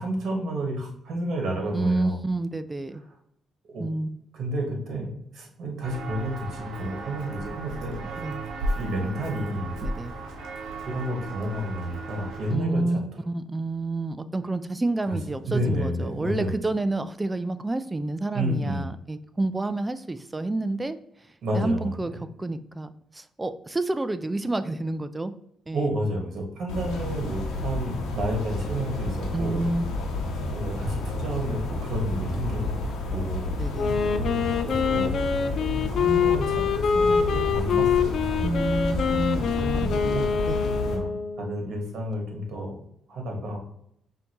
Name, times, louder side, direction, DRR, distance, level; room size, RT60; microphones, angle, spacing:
voice 1, 0.0-2.2 3.7-3.8 4.3-8.0 8.7-9.7 10.9-13.1 15.1-15.2 15.4-16.5 18.3-18.8 21.4-22.1 25.7-29.6 30.5-33.5 34.6-35.2 35.9-38.5 39.6-40.2 40.8-41.1 41.4-42.8 43.1-43.6, right 1 dB, 65° right, 1 dB, 1.4 m, -30 dB
voice 2, 1.7-3.0 3.8-4.2 8.2-8.4 9.8-10.1 12.5-13.0 13.3-21.0 21.5-25.3 25.7-26.0 29.3-29.9 33.6-34.0 38.4-40.8, right 2 dB, 15° right, 11 dB, 0.4 m, -29 dB
Walk footsteps, 5.8-12.5, right 2 dB, 85° right, 0.9 m, -35 dB
sound 1, 26.7-41.0, left 2 dB, 90° left, 1.0 m, -30 dB
Wind instrument woodwind instrument, 33.7-41.5, left 6 dB, 60° left, 0.4 m, -25 dB
5.5 x 2.7 x 2.9 m, 0.74 s
cardioid pair, 90°, 0 cm